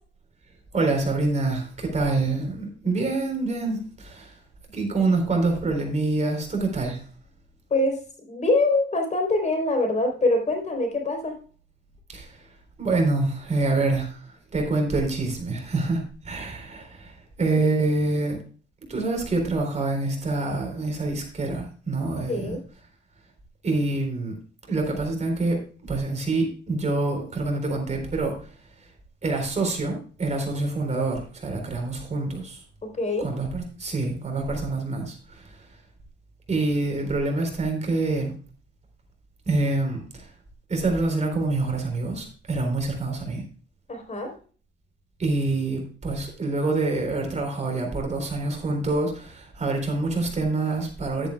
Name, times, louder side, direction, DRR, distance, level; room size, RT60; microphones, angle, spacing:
voice 1, 0.7-4.4 4.7-7.0 12.1-18.4 18.9-22.6 23.6-24.4 24.7-28.5 28.8-28.9 29.2-32.6 33.2-35.7 36.5-38.3 39.5-40.3 40.7-43.4 45.2-51.3, right 3 dB, 35° right, 2 dB, 3.9 m, -26 dB
voice 2, 8.3-11.3 17.5-17.6 22.3-22.6 32.8-33.3 43.9-44.3, left 2 dB, 35° left, 3 dB, 3.7 m, -24 dB
11.5 x 10.5 x 2.3 m, 0.40 s
cardioid pair, 90°, 20 cm